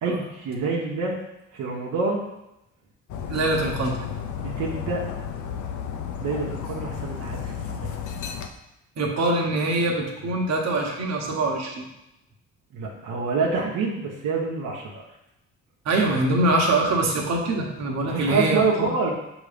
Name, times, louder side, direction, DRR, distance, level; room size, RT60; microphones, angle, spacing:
voice 1, 0.0-1.2 1.5-2.2 4.4-5.0 6.2-8.0 12.7-15.0 18.0-19.1, right 4 dB, 80° right, -3 dB, 1.1 m, -27 dB
Dog, 3.1-8.5, left 8 dB, 75° left, 0.7 m, -33 dB
voice 2, 3.3-4.0 9.0-11.8 15.8-18.9, right 2 dB, 60° right, -1 dB, 1.3 m, -24 dB
6.2 x 3.0 x 5.1 m, 0.90 s
cardioid pair, 90°, 30 cm